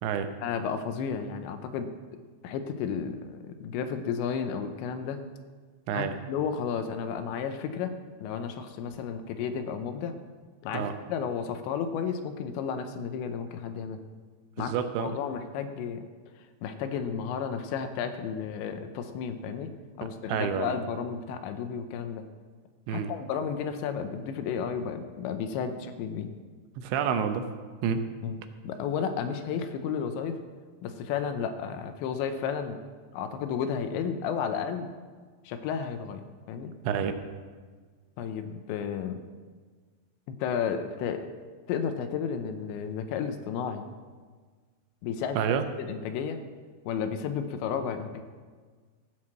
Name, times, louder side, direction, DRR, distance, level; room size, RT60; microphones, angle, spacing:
voice 1, 0.4-1.9 2.4-5.2 5.9-7.9 8.2-10.2 10.6-14.0 14.6-14.7 15.0-16.1 16.6-19.7 20.0-22.2 22.9-26.3 28.2-30.4 30.8-32.8 33.1-34.9 35.5-36.7 38.2-39.3 40.3-41.3 41.7-43.9 45.0-45.4 45.8-46.4 46.9-48.2, left 7 dB, 80° left, 8 dB, 2.9 m, -32 dB
voice 2, 14.6-15.1 20.3-20.8 22.9-23.1 26.8-27.5 27.8-28.0 36.8-37.2 45.3-45.6, right 7 dB, 80° right, 8 dB, 3.0 m, -28 dB
16.0 x 6.4 x 7.4 m, 1.5 s
omnidirectional pair, 5.4 m